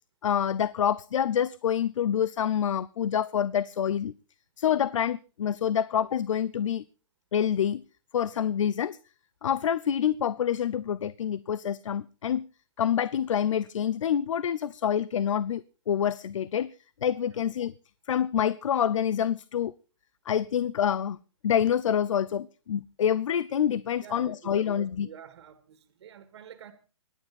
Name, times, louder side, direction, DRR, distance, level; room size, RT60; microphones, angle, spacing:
voice 1, 0.2-4.1 4.6-6.8 7.3-7.8 8.1-9.0 9.4-12.5 12.8-16.7 17.0-17.7 18.1-19.7 20.3-21.2 21.4-25.1, left 9 dB, 75° left, 19 dB, 0.7 m, -27 dB
voice 2, 24.0-26.7, right 9 dB, 60° right, 8 dB, 2.2 m, -47 dB
24.0 x 10.0 x 4.3 m, 0.35 s
hypercardioid pair, 155°, 16 cm